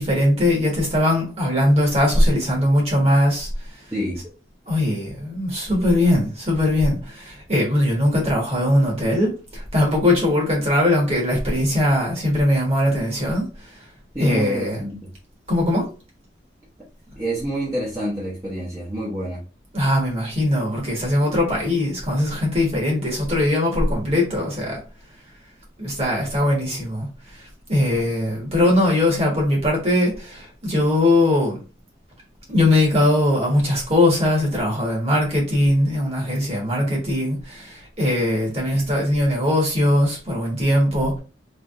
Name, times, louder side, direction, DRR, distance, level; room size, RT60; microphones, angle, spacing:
voice 1, 0.0-3.8 4.7-13.8 14.2-14.8 15.5-15.9 19.7-24.8 25.8-31.6 32.5-41.2, left 1 dB, 35° right, 1.5 m, -20 dB
voice 2, 3.9-4.2 14.1-15.1 17.2-19.4, right 1 dB, 20° right, 0.9 m, -27 dB
3.4 x 3.2 x 2.5 m
head